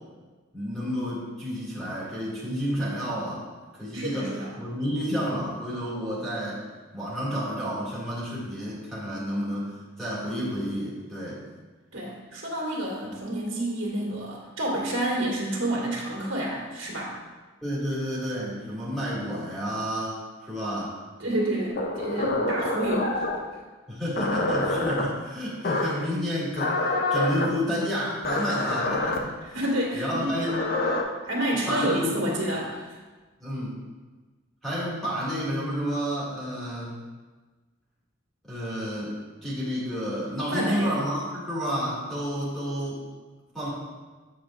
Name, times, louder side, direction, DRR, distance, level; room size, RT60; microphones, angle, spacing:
voice 1, 0.5-3.5 3.8-6.6 6.9-9.7 10.0-11.4 17.6-21.0 22.2-22.3 23.9-29.4 29.9-30.6 31.7-32.2 33.4-33.8 34.6-36.9 38.4-43.0 43.5-43.7, equal, ahead, -9 dB, 2.2 m, -30 dB
voice 2, 3.9-4.6 11.9-17.1 21.2-23.6 29.4-30.5 31.2-33.0 40.5-41.0, right 1 dB, 70° right, -3 dB, 2.0 m, -29 dB
sound 1, 21.8-23.5 24.2-25.0 25.6-26.1 26.6-27.5 28.2-29.2 30.3-31.0, left 2 dB, 50° left, 0.6 m, -27 dB
8.0 x 7.1 x 2.5 m, 1.3 s
head